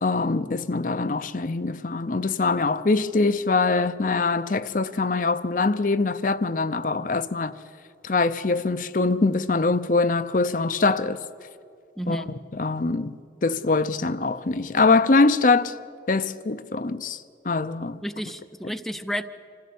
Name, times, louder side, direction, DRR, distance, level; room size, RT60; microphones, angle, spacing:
voice 1, 0.0-7.5 8.0-11.2 12.1-12.2 12.6-15.7 16.1-17.2 17.5-18.0, left 3 dB, 50° left, 0.6 m, -23 dB
voice 2, 12.0-12.3 18.0-19.2, equal, ahead, 0.6 m, -31 dB
26.5 x 15.0 x 8.5 m
head